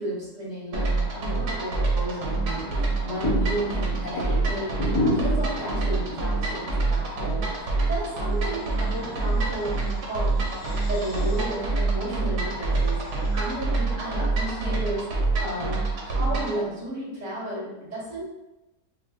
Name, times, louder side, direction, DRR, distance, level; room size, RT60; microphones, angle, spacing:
voice 1, 0.0-10.4 10.8-13.0 13.3-15.1 15.4-18.3, right 1 dB, 50° right, -8 dB, 1.8 m, -33 dB
sound 1, 0.7-16.6, right 3 dB, 80° right, 1.3 m, -26 dB
sound 2, 2.3-14.3, left 1 dB, 40° left, 0.7 m, -34 dB
sound 3, 8.3-13.8, left 2 dB, 70° left, 0.9 m, -45 dB
5.5 x 2.1 x 2.3 m, 1.0 s
omnidirectional pair, 1.7 m